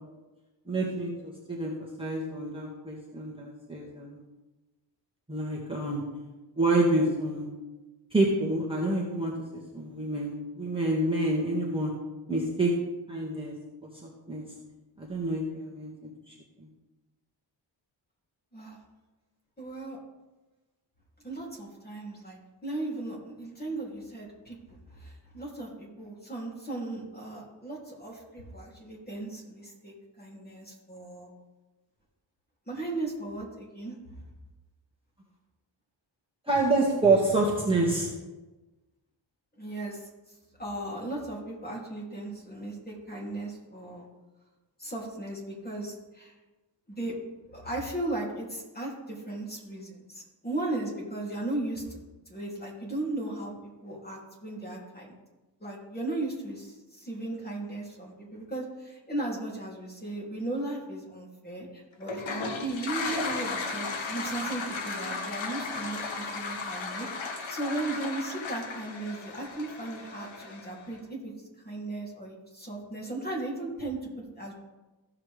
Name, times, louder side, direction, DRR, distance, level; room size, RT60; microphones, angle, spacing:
voice 1, 0.7-1.7 2.0-4.2 5.3-6.0 6.6-7.5 8.1-9.3 9.7-11.9 12.3-12.7 13.1-13.5 14.0-14.4 15.0-16.3 36.5-38.1, right 2 dB, 10° right, -5 dB, 2.0 m, -27 dB
voice 2, 19.6-20.0 21.2-31.3 32.7-34.0 39.6-40.1 40.6-44.0 44.8-46.3 46.9-47.1 47.5-52.0 52.3-53.5 53.8-55.1 55.6-67.1 67.5-71.3 71.6-74.5, right 2 dB, 20° left, -4 dB, 3.2 m, -36 dB
Toilet flush, 62.0-70.9, left 4 dB, 80° left, 1.3 m, -35 dB
15.5 x 5.9 x 3.5 m, 1.2 s
cardioid pair, 90°, 46 cm